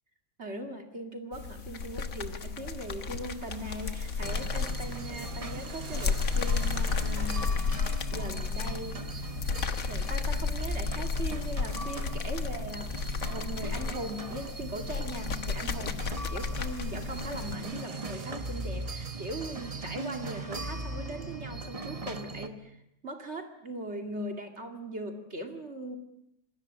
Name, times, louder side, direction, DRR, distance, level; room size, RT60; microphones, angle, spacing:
voice 1, 0.4-9.1 9.9-26.0, right 1 dB, 50° right, 4 dB, 2.6 m, -40 dB
sound 1, 1.3-17.6, left 5 dB, 70° left, 1.8 m, -33 dB
sound 2, 1.7-20.3, right 5 dB, 80° right, 2.2 m, -54 dB
sound 3, 4.2-22.5, right 3 dB, 25° right, 1.3 m, -39 dB
27.0 x 20.0 x 8.8 m, 0.81 s
omnidirectional pair, 1.5 m